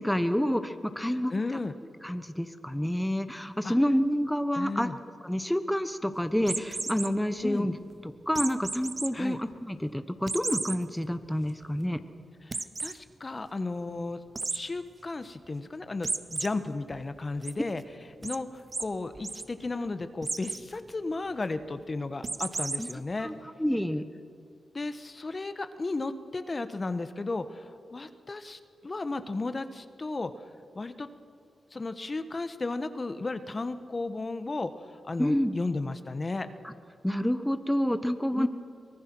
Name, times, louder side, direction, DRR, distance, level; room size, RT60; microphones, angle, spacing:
voice 1, 0.0-1.3 2.0-4.9 5.2-7.8 8.0-12.0 22.8-22.9 23.2-23.3 23.6-24.1 35.2-35.5 36.6-36.7 37.0-38.5, equal, 5° left, 10 dB, 1.1 m, -28 dB
voice 2, 1.1-1.8 3.6-3.7 4.5-5.0 7.4-7.7 9.1-9.4 12.4-14.2 14.5-17.8 18.2-23.3 24.7-30.3 30.7-31.1 31.7-36.5 38.3-38.5, left 3 dB, 40° left, 10 dB, 1.2 m, -34 dB
sound 1, 6.4-7.1 8.3-9.1 9.5-9.6 10.3-10.8 11.2-11.3 11.6-11.7 12.5-12.9 14.3-14.6 16.0-16.5 16.9-17.5 18.2-18.4 18.7-18.8 19.1-19.4 20.2-20.6 22.2-22.9, right 3 dB, 40° right, 1.0 m, -33 dB
24.5 x 19.0 x 6.2 m, 2.3 s
cardioid pair, 50°, 0 cm